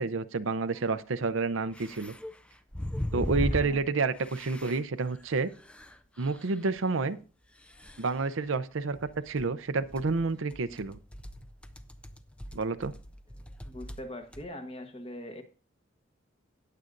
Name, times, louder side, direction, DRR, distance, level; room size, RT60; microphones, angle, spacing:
voice 1, 0.0-2.1 3.1-5.5 6.2-7.2 8.0-11.0 12.5-12.9, right 4 dB, 75° right, 13 dB, 0.6 m, -29 dB
sound 1, 0.7-0.8 1.7-3.9 4.2-4.8 5.1-5.2 5.5-6.4 6.8-6.9 7.7-8.2 8.9-9.5 9.8-14.1 14.3-14.4, left 1 dB, 5° left, 0.5 m, -38 dB
voice 2, 3.5-3.8 13.6-15.4, left 1 dB, 30° left, 7 dB, 1.2 m, -42 dB
18.0 x 7.7 x 2.6 m, 0.35 s
head